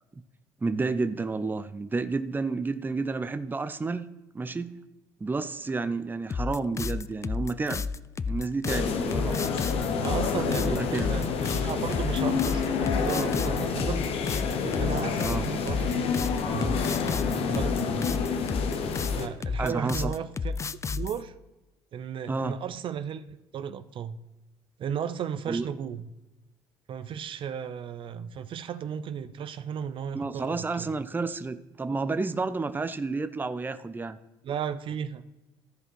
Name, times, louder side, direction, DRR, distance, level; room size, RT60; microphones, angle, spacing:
voice 1, 0.6-4.1 4.3-4.8 5.2-7.9 8.3-9.6 10.6-11.3 15.2-15.5 19.6-20.1 22.3-22.6 25.5-25.7 30.1-34.2, right 3 dB, 20° right, 11 dB, 0.6 m, -30 dB
sound 1, 6.3-21.2, left 5 dB, 30° left, 0.4 m, -31 dB
sound 2, 8.7-19.3, left 6 dB, 65° left, 1.1 m, -28 dB
voice 2, 10.0-14.1 14.6-16.2 16.4-16.8 17.4-18.1 19.1-20.6 20.9-21.3 21.9-23.2 23.5-24.2 24.8-26.1 26.9-30.9 34.4-35.2, right 8 dB, 55° right, 12 dB, 0.6 m, -35 dB
14.0 x 5.0 x 4.7 m, 1.0 s
supercardioid pair, 75°, 11 cm